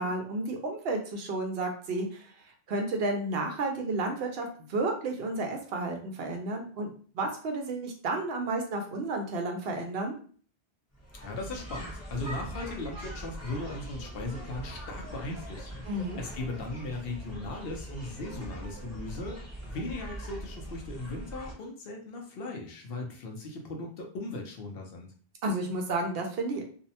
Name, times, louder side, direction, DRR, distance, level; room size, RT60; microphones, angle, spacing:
voice 1, 0.0-2.3 2.7-6.9 7.1-10.1 15.9-16.2 25.4-26.6, right 2 dB, 70° right, 3 dB, 0.8 m, -32 dB
sound 1, 10.9-21.5, right 1 dB, 15° left, 0.8 m, -42 dB
voice 2, 11.2-15.9 16.2-25.1, left 2 dB, 65° left, 1 dB, 0.8 m, -38 dB
2.6 x 2.0 x 2.7 m, 0.44 s
omnidirectional pair, 1.1 m